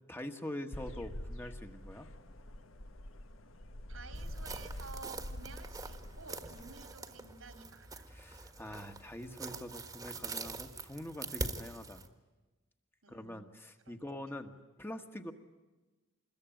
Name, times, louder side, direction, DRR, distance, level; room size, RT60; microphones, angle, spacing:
voice 1, 0.1-2.1 8.1-12.0 13.1-15.3, left 1 dB, 10° left, 6 dB, 1.4 m, -44 dB
sound 1, 0.7-6.8, left 1 dB, 75° left, 1.4 m, -46 dB
voice 2, 3.9-8.1 13.0-13.5 13.9-14.0, right 4 dB, 80° right, 6 dB, 3.1 m, -52 dB
sound 2, 4.1-12.1, right 3 dB, 15° right, 1.5 m, -44 dB
26.5 x 21.5 x 9.1 m, 1.2 s
head